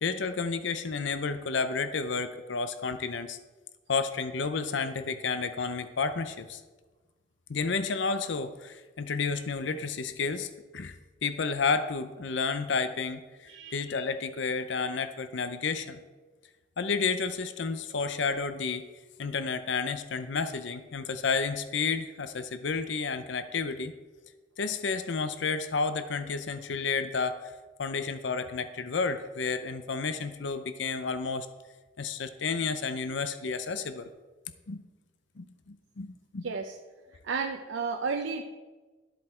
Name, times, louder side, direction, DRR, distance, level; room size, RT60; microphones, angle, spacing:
voice 1, 0.0-3.4 3.9-6.6 7.5-11.0 11.2-16.0 16.8-18.9 19.2-23.9 24.6-27.5 27.8-31.5 32.0-34.1 34.7-34.8 35.4-36.5, left 4 dB, 70° left, 11 dB, 0.6 m, -31 dB
voice 2, 36.4-36.8 37.2-38.4, right 5 dB, 85° right, 4 dB, 0.6 m, -32 dB
13.0 x 7.9 x 4.4 m, 1.3 s
head